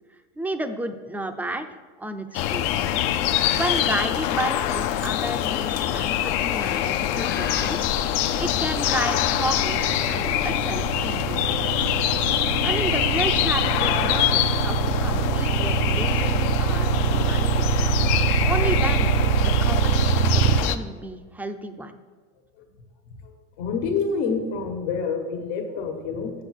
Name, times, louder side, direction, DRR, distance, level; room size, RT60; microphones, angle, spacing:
voice 1, 0.4-2.8 3.5-7.9 8.4-11.6 12.6-17.7 18.4-19.1 19.4-22.0, right 1 dB, 5° right, 8 dB, 0.5 m, -32 dB
sound 1, 2.3-20.8, left 11 dB, 60° left, 0.7 m, -24 dB
Bird, 3.2-9.6, left 7 dB, 30° left, 0.8 m, -37 dB
sound 2, 7.4-20.6, right 9 dB, 70° right, 0.6 m, -24 dB
voice 2, 23.6-26.3, left 5 dB, 75° left, 3 dB, 1.5 m, -27 dB
7.5 x 7.3 x 6.4 m, 1.5 s
supercardioid pair, 135°, 34 cm